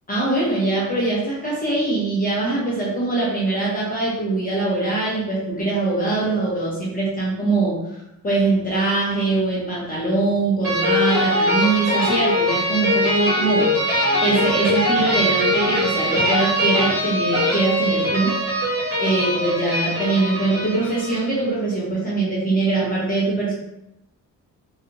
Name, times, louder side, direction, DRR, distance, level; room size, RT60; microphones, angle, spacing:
voice 1, 0.1-8.0 8.2-13.7 14.2-18.4 19.0-23.5, right 2 dB, 25° left, -6 dB, 0.7 m, -22 dB
sound 1, 10.6-21.4, equal, 40° right, 1.2 m, -21 dB
3.2 x 2.8 x 2.6 m, 0.85 s
wide cardioid pair, 165°, 33 cm